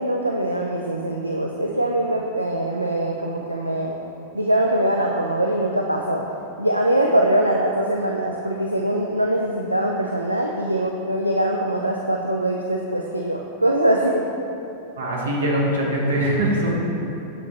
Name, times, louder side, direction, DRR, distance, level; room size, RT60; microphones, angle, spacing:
voice 1, 0.0-3.9 4.3-6.2 6.6-14.2, right 1 dB, 85° right, 0 dB, 0.3 m, -22 dB
voice 2, 15.0-16.8, right 1 dB, 70° right, -3 dB, 1.2 m, -22 dB
7.1 x 4.0 x 4.1 m, 2.8 s
figure-of-eight pair, 90°, 0 cm